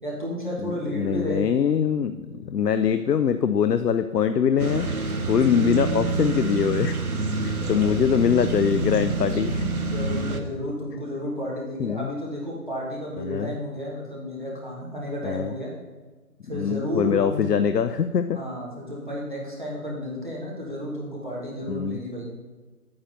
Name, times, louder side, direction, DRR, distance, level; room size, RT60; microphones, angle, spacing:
voice 1, 0.0-1.4 7.6-8.0 9.7-15.7 16.4-17.5 18.3-22.3, equal, 30° right, -5 dB, 1.4 m, -32 dB
voice 2, 0.6-4.9 5.3-7.0 7.4-9.7 11.8-12.1 13.2-13.5 15.2-15.5 16.5-18.4 21.7-22.0, left 7 dB, 90° left, 10 dB, 0.6 m, -23 dB
sound 1, 4.6-10.4, right 3 dB, 65° right, 0.9 m, -27 dB
9.4 x 8.7 x 2.7 m, 1.3 s
figure-of-eight pair, 175°, 47 cm